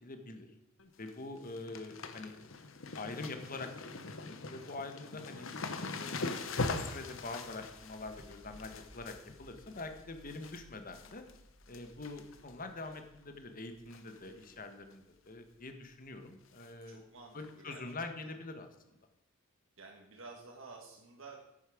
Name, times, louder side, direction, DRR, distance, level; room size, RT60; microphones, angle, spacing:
voice 1, 0.0-0.5 1.0-2.3 2.9-5.5 5.7-6.2 6.6-11.2 11.7-17.1 17.3-19.0, left 3 dB, 45° left, 7 dB, 1.3 m, -45 dB
sound 1, 0.8-1.1 1.4-10.6 10.9-11.4 11.7-12.5 12.8-12.9 13.9-14.2 14.4-14.5 14.9-15.0 16.6-16.7 17.4-17.5, left 3 dB, 70° left, 0.9 m, -42 dB
voice 2, 5.3-5.7 14.2-14.7 16.9-17.9 18.2-18.4 19.8-21.4, right 3 dB, 70° right, -1 dB, 1.6 m, -53 dB
sound 2, 6.7-17.4, equal, 10° right, 1.4 m, -62 dB
10.5 x 8.8 x 4.9 m, 0.85 s
head